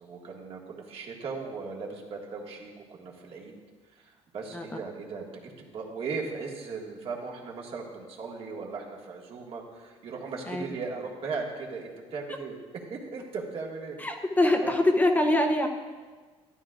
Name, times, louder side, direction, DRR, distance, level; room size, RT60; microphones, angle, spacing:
voice 1, 0.0-3.5 3.9-5.3 5.6-14.0 14.6-14.7, right 4 dB, 55° right, -1 dB, 1.8 m, -37 dB
voice 2, 14.0-15.7, left 1 dB, 15° left, 4 dB, 0.7 m, -23 dB
13.0 x 11.0 x 2.5 m, 1.4 s
cardioid pair, 115°, 12 cm